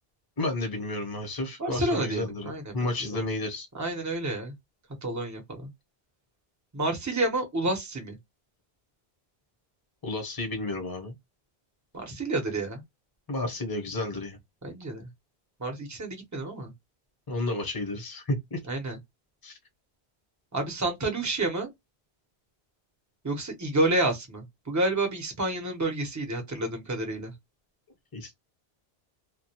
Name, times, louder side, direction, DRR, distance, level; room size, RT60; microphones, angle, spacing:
voice 1, 0.4-3.7 10.0-11.1 13.3-14.4 17.3-18.6 19.4-19.6 28.1-28.3, left 2 dB, 25° left, 0.8 m, -31 dB
voice 2, 1.6-3.2 3.7-4.5 5.0-5.7 6.7-8.2 11.9-12.8 14.6-15.1 15.6-16.7 18.7-19.0 20.5-21.7 23.2-27.3, right 2 dB, 20° right, 0.7 m, -29 dB
2.3 x 2.1 x 2.7 m
omnidirectional pair, 1.1 m